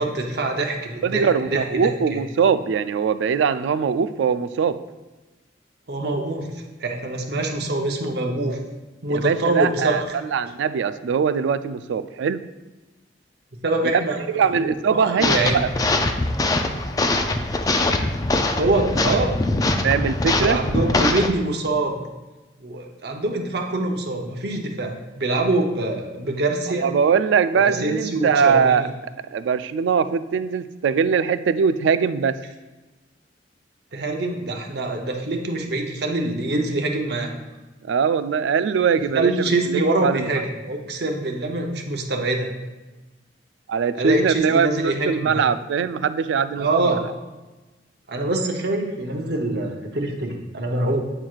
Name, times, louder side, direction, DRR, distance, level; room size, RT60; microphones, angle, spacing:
voice 1, 0.0-2.2 5.9-8.6 9.0-10.2 13.6-14.2 14.9-15.6 18.6-19.3 20.4-22.0 22.6-26.9 27.5-28.9 33.9-37.3 39.1-42.5 44.0-45.4 46.6-47.0 48.1-51.0, right 2 dB, 60° right, 2 dB, 0.8 m, -24 dB
voice 2, 1.0-4.8 9.1-10.0 10.3-12.4 13.9-14.0 14.3-15.7 19.8-20.6 26.8-28.8 29.3-32.4 37.9-39.3 39.7-40.3 43.7-47.0, right 6 dB, 85° right, 13 dB, 0.3 m, -21 dB
sound 1, 15.2-21.3, left 2 dB, 20° left, 0.3 m, -22 dB
8.7 x 4.5 x 2.4 m, 1.1 s
head